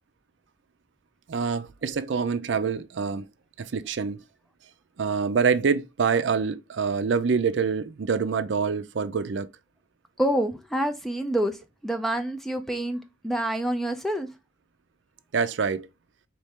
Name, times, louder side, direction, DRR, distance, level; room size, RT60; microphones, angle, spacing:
voice 1, 1.3-3.3 3.6-4.2 5.0-9.5 15.3-15.9, right 5 dB, 65° right, 0.4 m, -26 dB
voice 2, 10.2-11.6 11.8-14.3, right 1 dB, ahead, 0.4 m, -27 dB
4.2 x 3.3 x 3.5 m
head